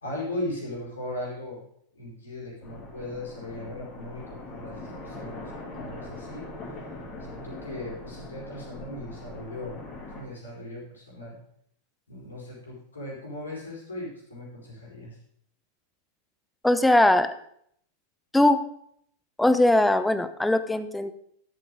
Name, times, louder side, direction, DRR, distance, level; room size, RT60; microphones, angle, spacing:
voice 1, 0.0-1.6 1.9-6.4 7.3-9.8 10.1-11.4 12.1-15.1, left 1 dB, 75° left, -5 dB, 4.6 m, -38 dB
sound 1, 2.6-10.2, left 2 dB, 30° left, 3.2 m, -41 dB
voice 2, 16.6-17.3 18.3-18.6 19.4-21.1, left 1 dB, 5° left, 11 dB, 0.7 m, -20 dB
12.5 x 7.7 x 3.8 m, 0.69 s
figure-of-eight pair, 90°, 0 cm